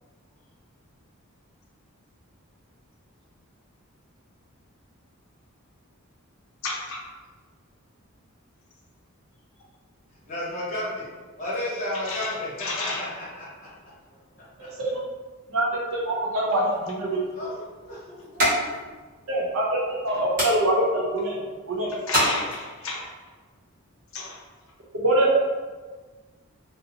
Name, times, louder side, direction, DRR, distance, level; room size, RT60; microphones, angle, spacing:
voice 1, 6.6-7.0 11.9-13.0 20.1-20.2 21.9-23.0 24.1-24.4, left 3 dB, 65° left, -2 dB, 0.5 m, -32 dB
voice 2, 10.3-11.1 11.4-13.7 14.3-14.4 17.3-18.5, left 1 dB, 35° left, -8 dB, 0.9 m, -33 dB
voice 3, 15.5-17.2 19.3-21.4 21.7-21.9 25.0-25.3, right 1 dB, 70° right, -4 dB, 0.6 m, -24 dB
sound 1, 16.7-23.0, equal, 40° right, 0.8 m, -31 dB
2.6 x 2.0 x 2.7 m, 1.4 s
head